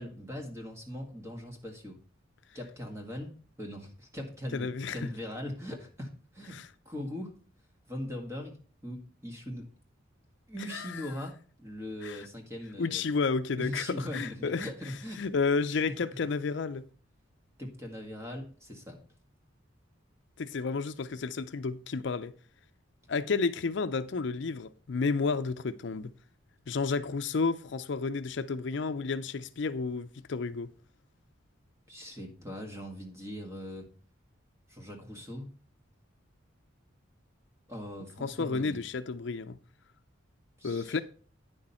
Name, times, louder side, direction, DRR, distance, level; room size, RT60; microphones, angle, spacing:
voice 1, 0.0-2.0 2.5-6.6 6.9-7.3 7.9-8.6 8.8-9.6 10.5-13.0 13.6-15.3 17.6-19.0 31.9-33.9 34.7-35.5 37.7-38.8 40.6-41.0, equal, 15° right, 1.9 m, -40 dB
voice 2, 4.5-5.0 6.5-6.7 10.7-11.1 12.0-12.2 12.8-13.9 14.1-14.7 15.2-16.8 20.4-22.3 23.1-26.1 26.7-30.7 38.2-39.6 40.6-41.0, left 4 dB, 60° left, 0.5 m, -31 dB
9.5 x 6.5 x 4.3 m
head